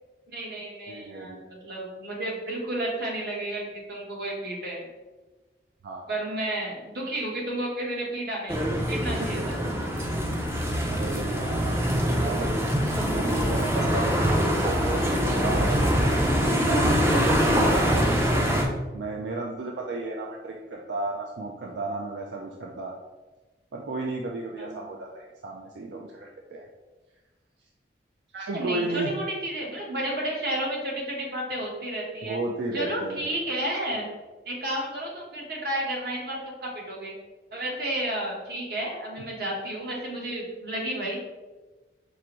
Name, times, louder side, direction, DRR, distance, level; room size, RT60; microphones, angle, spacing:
voice 1, 0.3-4.9 6.1-9.6 24.6-24.9 28.5-32.4 32.7-34.1 34.4-37.1 37.5-41.2, right 1 dB, 55° right, -2 dB, 1.0 m, -32 dB
voice 2, 0.9-1.5 5.8-6.1 9.2-9.4 10.9-11.8 12.1-12.6 13.1-18.4 18.9-23.0 23.7-26.7 28.3-29.1 32.2-33.3, right 2 dB, 80° right, 0 dB, 0.4 m, -34 dB
sound 1, 8.5-18.6, equal, 15° right, 0.4 m, -24 dB
4.7 x 2.5 x 2.9 m, 1.2 s
head